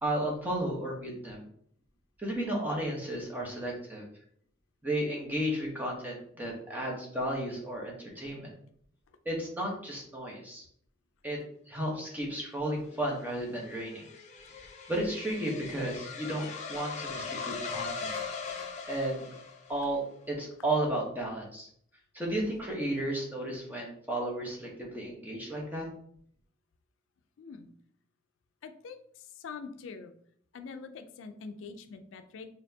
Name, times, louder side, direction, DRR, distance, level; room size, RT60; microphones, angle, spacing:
voice 1, 0.0-1.4 2.2-4.0 4.8-8.5 9.2-10.6 11.2-11.4 11.7-14.0 14.6-18.1 18.9-19.3 19.7-21.7 22.1-25.9, right 1 dB, 10° right, -2 dB, 0.9 m, -33 dB
sound 1, 12.9-20.0, left 5 dB, 35° left, 0.6 m, -40 dB
voice 2, 27.4-27.7 28.6-30.1 30.5-32.5, left 5 dB, 80° left, 8 dB, 0.4 m, -44 dB
4.2 x 3.3 x 2.7 m, 0.64 s
head